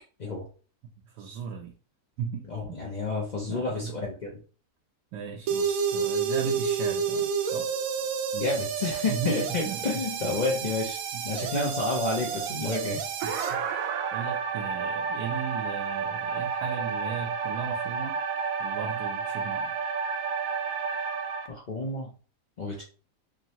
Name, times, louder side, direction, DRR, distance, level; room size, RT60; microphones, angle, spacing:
voice 1, 1.0-1.7 2.2-2.8 3.5-4.0 5.1-7.7 9.1-9.4 9.6-10.3 11.1-11.2 12.2-12.8 13.2-13.7 14.1-18.2 18.6-19.8, right 7 dB, 85° right, 1.2 m, -37 dB
voice 2, 2.5-4.4 8.3-11.0 11.2-13.0 21.5-22.1 22.6-22.8, left 3 dB, 75° left, 0.4 m, -30 dB
sound 1, 5.5-21.5, right 6 dB, 70° right, 0.9 m, -30 dB
3.6 x 3.2 x 2.8 m
omnidirectional pair, 1.8 m